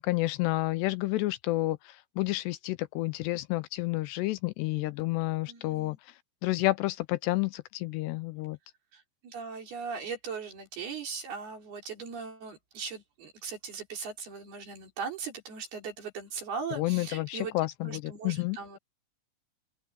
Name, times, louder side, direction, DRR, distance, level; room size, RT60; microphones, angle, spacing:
voice 1, 0.0-1.8 2.2-6.0 6.4-8.6 16.8-18.6, left 19 dB, 80° left, 2.6 m, -30 dB
voice 2, 5.5-6.0 8.9-17.5 17.8-18.8, right 5 dB, 60° right, 6.7 m, -39 dB
open air
omnidirectional pair, 5.2 m